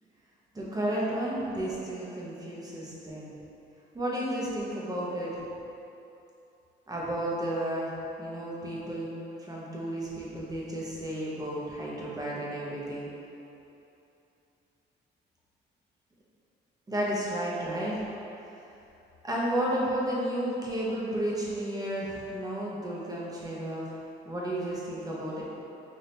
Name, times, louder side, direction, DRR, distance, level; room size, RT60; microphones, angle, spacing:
voice 1, 0.5-3.3 3.9-5.4 6.9-9.1 9.4-13.1 16.9-18.0 19.2-23.9 24.2-25.4, right 1 dB, 20° right, -6 dB, 0.9 m, -32 dB
5.2 x 2.8 x 2.8 m, 2.8 s
cardioid pair, 90°, 20 cm